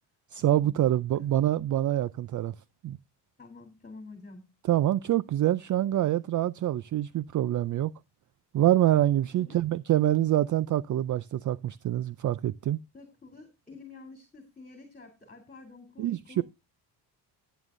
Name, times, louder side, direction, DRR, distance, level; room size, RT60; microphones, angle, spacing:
voice 1, 0.3-2.5 2.8-3.0 4.7-7.9 8.5-12.8 16.0-16.4, right 13 dB, 45° right, 0.5 m, -26 dB
voice 2, 3.4-4.5 9.3-9.6 12.9-16.4, left 3 dB, 20° left, 3.3 m, -49 dB
14.0 x 9.4 x 2.5 m
cardioid pair, 105°, 44 cm